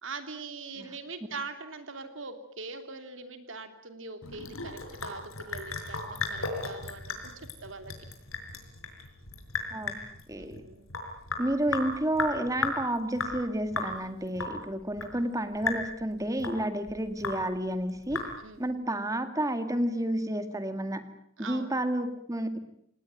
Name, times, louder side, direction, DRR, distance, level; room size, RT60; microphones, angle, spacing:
voice 1, 0.0-7.2 7.6-7.9 10.4-10.9 18.1-18.6 21.4-21.7, right 4 dB, 65° right, 8 dB, 3.1 m, -42 dB
Sink (filling or washing) / Drip, 4.2-18.7, left 4 dB, 85° left, 5.7 m, -36 dB
voice 2, 9.7-10.0 10.3-10.6 11.4-18.2 18.6-21.0 21.4-22.6, right 1 dB, 15° right, 9 dB, 2.0 m, -30 dB
27.5 x 19.0 x 9.1 m, 0.72 s
head